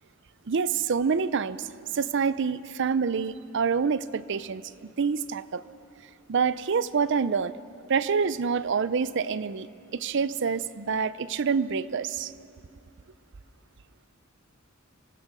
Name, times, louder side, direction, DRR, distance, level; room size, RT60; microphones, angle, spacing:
voice 1, 0.5-1.7 1.9-4.6 5.0-5.6 6.3-7.5 7.9-12.3, right 5 dB, 60° right, 16 dB, 0.5 m, -27 dB
25.0 x 18.0 x 6.2 m, 2.6 s
head